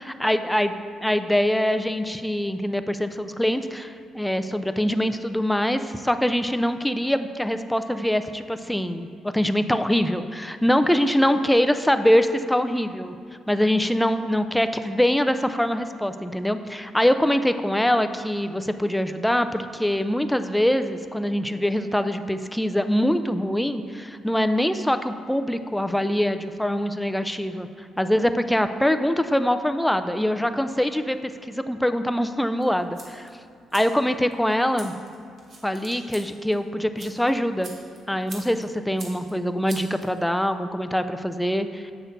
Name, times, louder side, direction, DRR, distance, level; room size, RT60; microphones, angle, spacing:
voice 1, 0.0-0.7 1.0-13.1 13.5-31.2 31.4-33.3 33.7-34.9 35.6-37.7 38.1-41.9, equal, 5° left, 9 dB, 0.4 m, -23 dB
sound 1, 32.6-40.6, right 2 dB, 55° right, 1.5 m, -46 dB
7.8 x 6.2 x 3.9 m, 2.3 s
cardioid pair, 90°, 0 cm